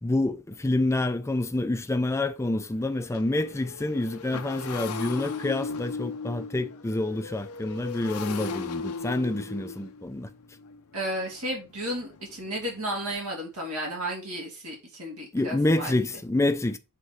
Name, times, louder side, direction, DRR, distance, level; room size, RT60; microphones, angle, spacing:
voice 1, 0.0-10.3 15.3-16.8, left 2 dB, 10° left, 0.4 m, -27 dB
Motorcycle, 0.5-0.6 1.1-1.3 1.5-13.1, left 4 dB, 80° left, 0.7 m, -38 dB
voice 2, 10.9-16.1, right 1 dB, 80° right, 2.5 m, -33 dB
6.4 x 3.9 x 4.4 m
head